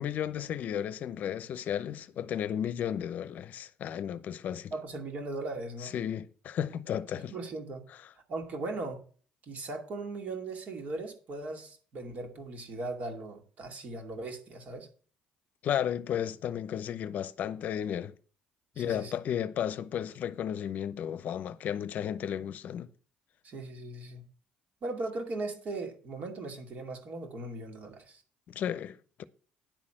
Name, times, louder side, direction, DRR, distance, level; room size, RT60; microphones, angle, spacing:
voice 1, 0.0-4.7 5.8-7.4 15.6-18.1 18.8-22.9 28.5-29.2, left 9 dB, 60° left, 0.7 m, -33 dB
voice 2, 4.7-6.0 7.1-7.9 8.3-9.0 9.5-14.9 18.8-19.2 23.4-24.2 24.8-28.2, right 2 dB, 55° right, 2.4 m, -38 dB
10.5 x 4.2 x 7.5 m
supercardioid pair, 90°, 3 cm